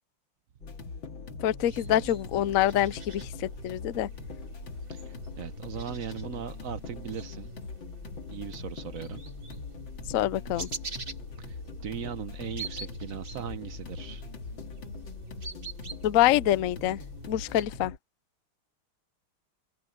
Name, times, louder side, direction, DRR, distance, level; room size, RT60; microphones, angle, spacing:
sound 1, 0.6-18.0, left 4 dB, 65° left, 2.8 m, -42 dB
voice 1, 1.4-4.1 10.1-10.7 16.0-17.0 17.3-17.9, left 13 dB, 85° left, 0.7 m, -26 dB
sound 2, 1.6-17.6, right 3 dB, 40° right, 4.1 m, -45 dB
voice 2, 4.9-7.5 8.3-9.2 11.4-14.2, right 8 dB, 55° right, 1.0 m, -39 dB
omnidirectional pair, 2.3 m